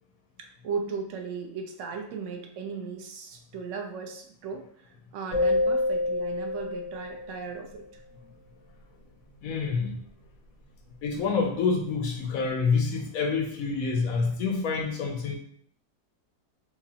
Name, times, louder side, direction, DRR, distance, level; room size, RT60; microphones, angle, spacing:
voice 1, 0.4-7.8, right 5 dB, 65° right, 2 dB, 0.7 m, -37 dB
sound 1, 5.3-7.6, left 2 dB, 50° right, 1.9 m, -27 dB
voice 2, 9.4-10.0 11.0-15.4, left 4 dB, 70° left, 2 dB, 0.9 m, -27 dB
4.7 x 2.5 x 2.7 m, 0.65 s
omnidirectional pair, 1.8 m